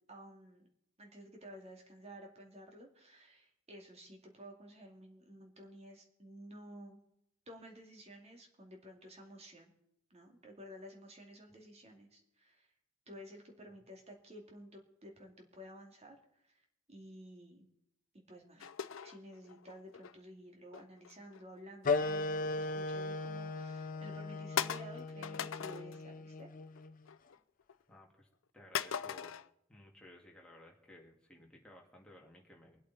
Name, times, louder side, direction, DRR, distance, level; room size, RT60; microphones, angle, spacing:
voice 1, 0.1-0.7 1.0-7.0 7.5-9.7 10.1-12.7 13.1-16.6 16.9-17.7 18.1-18.7 19.0-26.5, equal, 35° right, 2 dB, 2.5 m, -53 dB
sound 1, 18.6-20.1 20.7-22.0 22.4-22.7 23.2-23.3 23.8-23.9 24.6-26.0 26.4-26.8 27.1-27.7 28.7-29.5, left 8 dB, 90° left, 0.6 m, -40 dB
sound 2, 21.8-27.0, left 3 dB, 45° left, 0.7 m, -37 dB
voice 2, 27.9-28.3 28.5-29.3 29.7-32.8, left 1 dB, 5° left, -1 dB, 2.2 m, -57 dB
23.5 x 8.3 x 4.2 m, 0.77 s
head